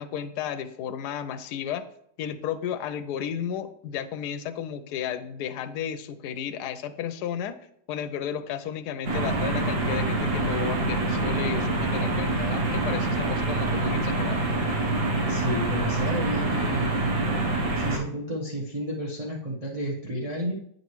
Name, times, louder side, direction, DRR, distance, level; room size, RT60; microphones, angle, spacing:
voice 1, 0.0-1.9 2.2-7.6 7.9-14.5, left 9 dB, 70° left, 10 dB, 1.1 m, -33 dB
sound 1, 9.0-18.0, right 2 dB, 50° right, 1.3 m, -26 dB
voice 2, 15.3-16.9 17.7-20.5, equal, 25° right, -2 dB, 0.9 m, -31 dB
9.1 x 5.3 x 3.1 m, 0.68 s
omnidirectional pair, 2.0 m